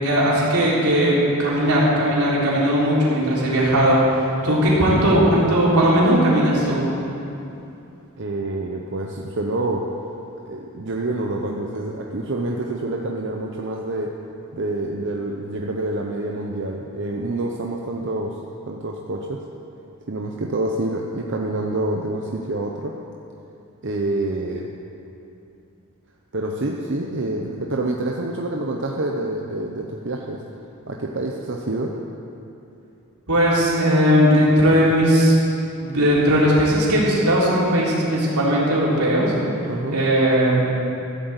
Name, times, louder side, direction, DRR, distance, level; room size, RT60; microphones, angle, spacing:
voice 1, 0.0-4.0 4.4-6.8 33.3-35.3 35.8-39.3 39.9-40.6, equal, 85° right, -6 dB, 3.8 m, -18 dB
voice 2, 8.2-9.9 10.5-14.1 14.5-18.3 18.7-19.4 20.1-22.9 23.8-24.8 26.3-30.4 30.9-31.9 39.7-40.1, right 2 dB, 55° right, 0 dB, 0.8 m, -27 dB
14.5 x 7.9 x 8.2 m, 2.8 s
head